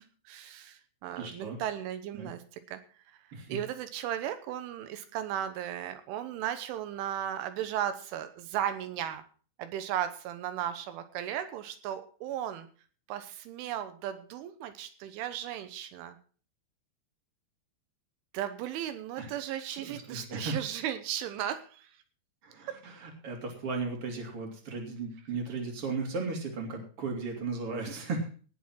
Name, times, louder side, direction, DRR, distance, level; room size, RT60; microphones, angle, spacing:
voice 1, 0.0-2.8 3.3-9.2 9.6-12.7 13.1-16.2 18.3-22.0 22.7-22.8, right 11 dB, 85° right, 9 dB, 3.5 m, -36 dB
voice 2, 1.2-1.6 2.1-2.3 3.3-3.6 19.2-19.3 19.8-20.5 22.4-28.3, right 4 dB, 35° right, 2 dB, 3.5 m, -36 dB
18.0 x 7.0 x 5.9 m, 0.40 s
omnidirectional pair, 5.5 m